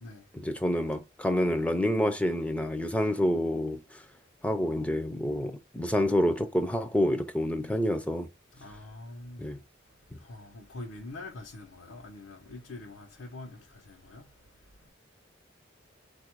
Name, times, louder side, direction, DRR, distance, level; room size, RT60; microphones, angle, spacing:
voice 1, 0.3-4.0 4.4-8.3 9.4-9.6, left 1 dB, 5° left, 0.5 m, -28 dB
voice 2, 8.5-9.5 10.1-14.3 14.7-14.9, left 2 dB, 80° left, 0.9 m, -45 dB
4.3 x 2.5 x 4.5 m
head